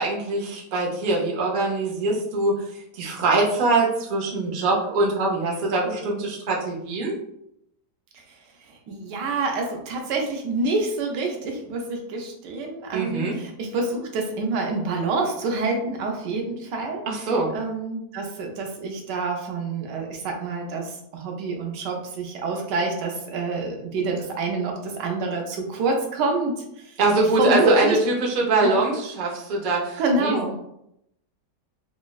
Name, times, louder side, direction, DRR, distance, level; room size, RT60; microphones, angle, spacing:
voice 1, 0.0-2.5 2.9-7.1 12.9-13.4 17.1-17.5 27.0-30.6, right 2 dB, 65° right, -3 dB, 0.4 m, -23 dB
voice 2, 8.9-17.0 17.5-26.9 27.4-28.0 28.6-28.8 30.0-30.5, right 3 dB, 90° right, 2 dB, 1.3 m, -27 dB
4.1 x 2.0 x 2.2 m, 0.78 s
omnidirectional pair, 1.8 m